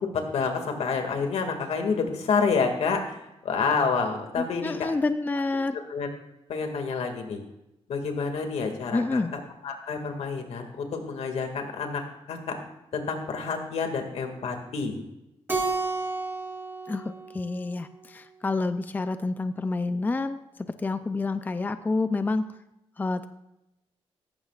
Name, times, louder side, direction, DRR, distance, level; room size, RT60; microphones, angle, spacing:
voice 1, 0.1-4.9 5.9-6.1 6.5-7.4 7.9-12.0 12.3-12.6 12.9-15.0, left 5 dB, 85° left, 4 dB, 2.2 m, -28 dB
voice 2, 4.4-5.8 8.9-9.3 16.9-20.4 20.8-22.5 23.0-23.3, left 3 dB, 15° left, 10 dB, 0.5 m, -28 dB
Keyboard (musical), 15.5-18.1, right 3 dB, 20° right, 1.7 m, -32 dB
17.5 x 15.0 x 2.5 m, 0.90 s
wide cardioid pair, 150°, 10 cm